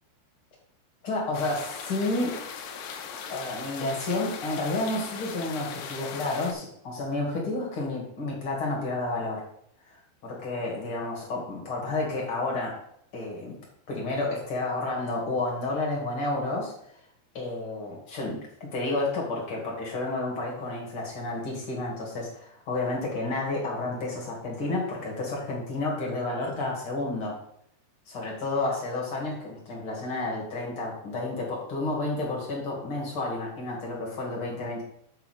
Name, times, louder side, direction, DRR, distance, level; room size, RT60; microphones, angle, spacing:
voice 1, 1.0-2.4 3.3-9.4 9.9-10.0 10.2-12.8 13.1-13.6 13.9-16.7 17.3-27.4 28.1-34.8, left 2 dB, 40° left, -2 dB, 2.3 m, -31 dB
sound 1, 1.3-6.5, left 6 dB, 75° left, 2.7 m, -39 dB
6.7 x 5.2 x 6.7 m, 0.72 s
omnidirectional pair, 5.2 m